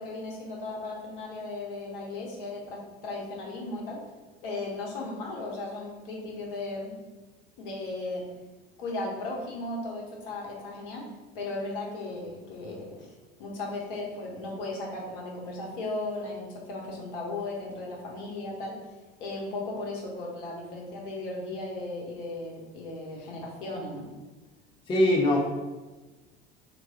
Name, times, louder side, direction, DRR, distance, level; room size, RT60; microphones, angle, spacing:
voice 1, 0.0-4.0 4.4-7.0 7.6-8.3 8.8-11.1 11.3-13.1 13.4-18.8 19.2-24.1, left 2 dB, 55° left, -2 dB, 1.2 m, -36 dB
voice 2, 24.9-25.5, left 1 dB, 15° left, -1 dB, 0.5 m, -22 dB
3.2 x 3.0 x 4.1 m, 1.2 s
figure-of-eight pair, 70°, 32 cm